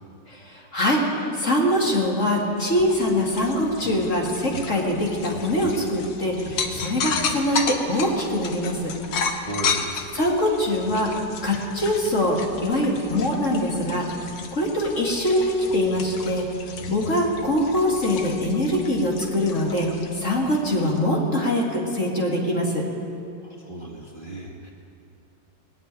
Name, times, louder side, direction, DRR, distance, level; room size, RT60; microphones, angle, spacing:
voice 1, 0.3-8.9 10.1-11.1 11.4-14.1 14.5-16.5 16.9-19.9 20.2-22.8, left 1 dB, 45° left, -2 dB, 2.3 m, -23 dB
sound 1, 2.7-21.1, left 5 dB, 80° left, 1.7 m, -33 dB
voice 2, 9.4-9.9 15.6-15.8 23.4-24.7, right 2 dB, 30° right, -2 dB, 1.3 m, -35 dB
19.5 x 6.8 x 9.5 m, 2.5 s
omnidirectional pair, 1.9 m